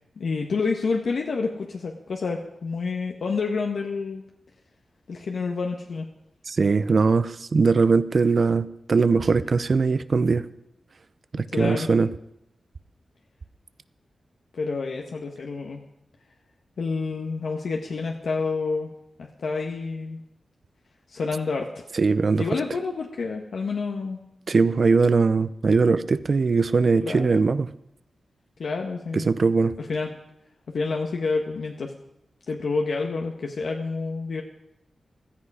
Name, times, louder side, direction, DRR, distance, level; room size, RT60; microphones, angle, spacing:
voice 1, 0.2-4.2 5.1-6.1 11.5-11.9 14.5-15.8 16.8-18.9 19.2-20.2 21.1-21.8 22.4-24.2 27.0-27.4 28.6-29.3 29.8-30.1 30.7-31.9 32.5-34.4, left 4 dB, 75° left, 1 dB, 1.4 m, -28 dB
voice 2, 6.5-10.4 11.3-12.1 21.9-22.4 24.5-27.7 29.1-29.8, right 4 dB, 55° right, 14 dB, 0.7 m, -21 dB
16.0 x 14.0 x 5.0 m, 0.82 s
wide cardioid pair, 90°, 0 cm